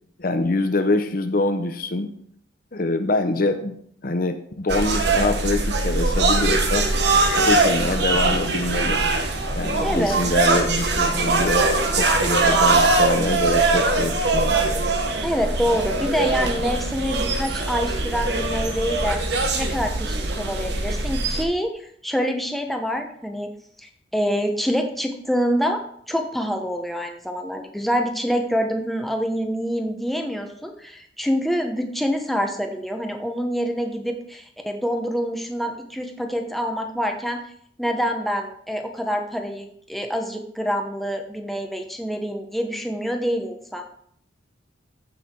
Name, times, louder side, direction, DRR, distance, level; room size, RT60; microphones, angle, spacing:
voice 1, 0.2-2.1 2.7-3.8 4.0-6.9 7.3-9.0 9.5-14.6, left 2 dB, 50° left, 8 dB, 0.7 m, -24 dB
sound 1, 4.7-21.4, right 2 dB, 60° right, 1.3 m, -22 dB
voice 2, 9.8-10.3 15.2-23.5 23.8-37.4 37.8-43.9, equal, ahead, 3 dB, 1.0 m, -26 dB
14.5 x 5.7 x 4.5 m, 0.67 s
head